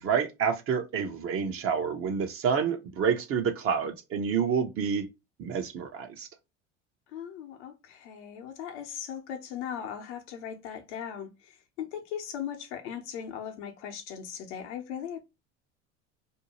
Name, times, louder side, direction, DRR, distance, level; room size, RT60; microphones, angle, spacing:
voice 1, 0.0-5.1 5.4-6.3, right 6 dB, 40° right, 0.7 m, -28 dB
voice 2, 7.1-15.2, left 8 dB, 75° left, 0.8 m, -38 dB
2.7 x 2.1 x 3.0 m
hypercardioid pair, 80°, 35 cm